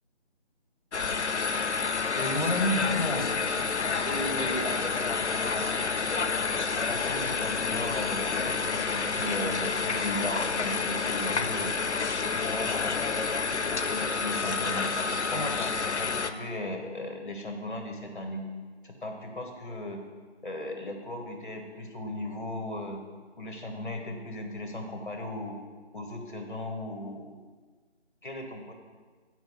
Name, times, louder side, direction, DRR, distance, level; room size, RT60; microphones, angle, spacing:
sound 1, 0.9-16.3, left 5 dB, 85° left, 0.6 m, -29 dB
sound 2, 1.9-16.0, left 1 dB, ahead, 1.3 m, -52 dB
voice 1, 2.1-3.3 4.0-5.9 6.5-11.7 12.3-13.0 13.3-14.9 15.3-18.4 18.8-20.0 20.4-23.0 23.4-25.6 25.9-27.4 28.2-28.7, left 1 dB, 45° left, 3 dB, 1.3 m, -35 dB
9.2 x 4.7 x 5.6 m, 1.4 s
figure-of-eight pair, 160°, 34 cm